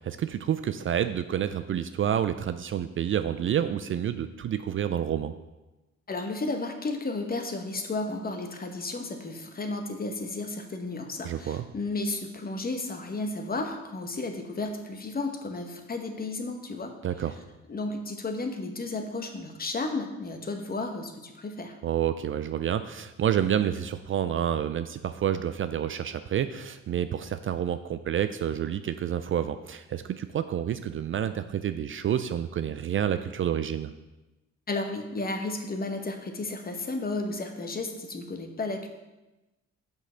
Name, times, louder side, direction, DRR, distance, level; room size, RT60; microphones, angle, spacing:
voice 1, 0.0-5.3 11.2-11.6 17.0-17.4 21.8-33.9, right 9 dB, 45° right, 11 dB, 0.4 m, -29 dB
voice 2, 6.1-16.9 17.7-21.8 34.7-38.9, left 2 dB, 30° left, 5 dB, 1.0 m, -33 dB
6.3 x 5.3 x 5.5 m, 1.0 s
cardioid pair, 90°, 30 cm